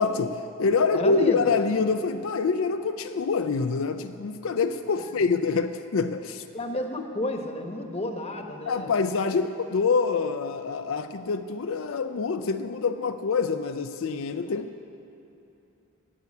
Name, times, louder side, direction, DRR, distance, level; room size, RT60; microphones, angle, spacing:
voice 1, 0.0-6.4 8.7-14.8, left 4 dB, 80° left, 8 dB, 0.4 m, -26 dB
voice 2, 0.9-1.4 4.9-5.1 6.5-8.9 14.5-14.6, left 1 dB, 30° left, 4 dB, 1.0 m, -32 dB
12.5 x 8.3 x 9.6 m, 2.8 s
head